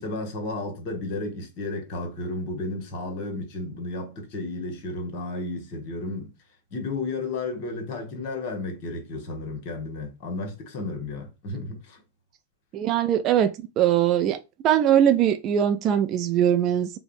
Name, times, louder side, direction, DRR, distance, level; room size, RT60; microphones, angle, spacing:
voice 1, 0.0-6.3 6.7-12.0, left 2 dB, 45° left, 1.0 m, -33 dB
voice 2, 12.7-14.4 14.6-17.0, right 10 dB, 35° right, 0.3 m, -21 dB
4.8 x 2.0 x 2.5 m
figure-of-eight pair, 90°, 0 cm